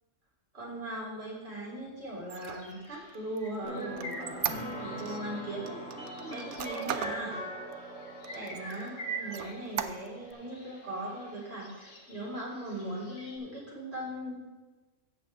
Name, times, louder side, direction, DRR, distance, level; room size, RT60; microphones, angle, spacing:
voice 1, 0.5-7.3 7.7-7.8 8.3-14.4, right 1 dB, 55° right, -6 dB, 3.6 m, -39 dB
Squeak, 2.2-5.2 5.7-7.2 7.7-7.8 8.2-8.9 9.3-10.3, right 9 dB, 70° right, 0.9 m, -37 dB
sound 1, 2.3-13.4, right 2 dB, 60° left, 1.5 m, -47 dB
sound 2, 3.6-11.2, right 1 dB, 5° right, 3.1 m, -42 dB
16.0 x 6.1 x 3.4 m, 1.2 s
omnidirectional pair, 1.3 m